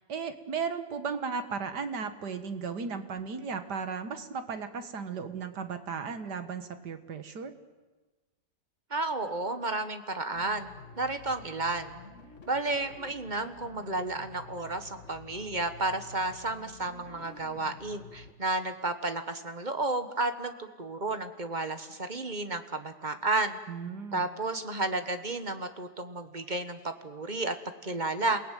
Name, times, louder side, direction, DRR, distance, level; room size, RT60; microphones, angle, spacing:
voice 1, 0.0-7.5 23.7-24.2, right 5 dB, 75° right, 9 dB, 2.1 m, -35 dB
voice 2, 8.9-10.7 11.0-12.0 12.5-23.6 24.1-27.5 27.8-28.4, right 2 dB, 30° right, 9 dB, 1.4 m, -32 dB
sound 1, 10.3-18.3, left 4 dB, 45° left, 2.2 m, -50 dB
28.0 x 18.5 x 9.2 m, 1.2 s
omnidirectional pair, 1.8 m